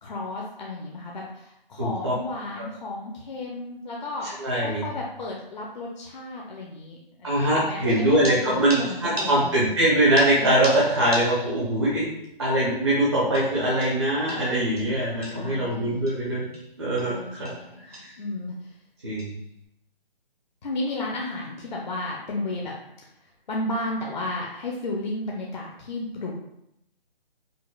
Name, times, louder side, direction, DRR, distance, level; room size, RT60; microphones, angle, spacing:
voice 1, 0.0-4.3 4.6-9.8 15.4-16.1 17.1-17.8 18.2-18.7 20.6-22.7 23.5-26.3, left 2 dB, 50° left, -2 dB, 0.5 m, -33 dB
voice 2, 1.8-2.1 4.2-4.8 7.2-12.1 12.4-16.5 16.8-17.5 17.8-18.1 19.0-19.3, right 1 dB, 30° right, -8 dB, 0.6 m, -23 dB
sound 1, 7.9-9.8 10.2-11.7 12.1-12.2 13.3-15.6 16.1-16.2 16.5-16.7 17.0-17.2 17.5-17.7 17.9-18.2 19.2-19.4, right 1 dB, 80° right, 1.2 m, -38 dB
5.1 x 2.0 x 2.2 m, 0.81 s
hypercardioid pair, 165°, 30 cm